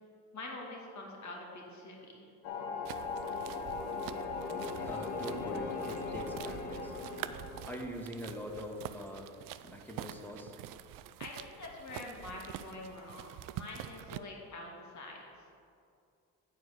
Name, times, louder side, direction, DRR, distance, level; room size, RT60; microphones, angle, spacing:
voice 1, 0.3-2.3 11.2-15.2, left 2 dB, 45° left, -1 dB, 2.2 m, -45 dB
sound 1, 2.4-7.9, left 4 dB, 90° left, 0.9 m, -38 dB
sound 2, 2.8-14.2, right 12 dB, 55° right, 0.5 m, -46 dB
voice 2, 4.7-6.9 7.6-10.5, equal, 5° left, 1 dB, 1.4 m, -43 dB
9.0 x 4.6 x 6.5 m, 2.4 s
hypercardioid pair, 65°, 39 cm